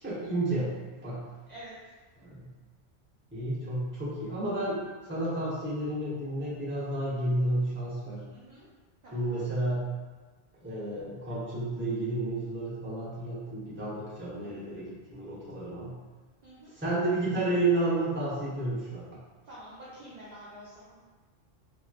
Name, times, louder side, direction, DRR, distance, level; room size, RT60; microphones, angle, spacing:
voice 1, 0.0-0.7 1.0-1.2 2.2-2.4 3.3-4.8 5.0-8.2 9.1-9.8 10.6-15.9 16.8-19.0, right 2 dB, 10° right, -10 dB, 0.8 m, -31 dB
voice 2, 8.3-8.7 9.0-9.4 14.4-14.7 16.4-16.7 19.5-21.0, right 1 dB, 50° right, -9 dB, 0.6 m, -48 dB
3.0 x 2.8 x 2.3 m, 1.3 s
omnidirectional pair, 1.2 m